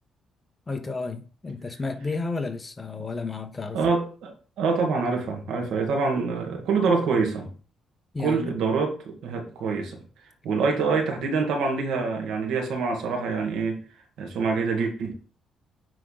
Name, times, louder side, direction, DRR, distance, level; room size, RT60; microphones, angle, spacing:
voice 1, 0.7-3.8 8.1-8.5, left 3 dB, 25° left, 1.2 m, -32 dB
voice 2, 3.7-7.5 8.2-10.0 10.4-13.8 14.2-15.1, right 4 dB, 80° right, 2.0 m, -26 dB
9.3 x 3.8 x 4.0 m
cardioid pair, 90°, 0 cm